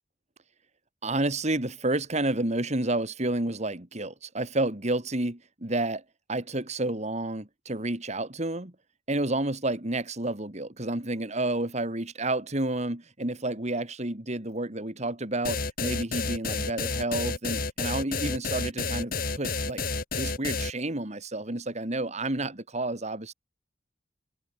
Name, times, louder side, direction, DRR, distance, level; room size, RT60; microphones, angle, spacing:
voice 1, 1.0-6.0 6.3-8.7 9.1-19.8 20.2-23.3, right 2 dB, 40° right, 2.7 m, -30 dB
sound 1, 15.4-20.7, left 4 dB, 50° left, 2.7 m, -30 dB
head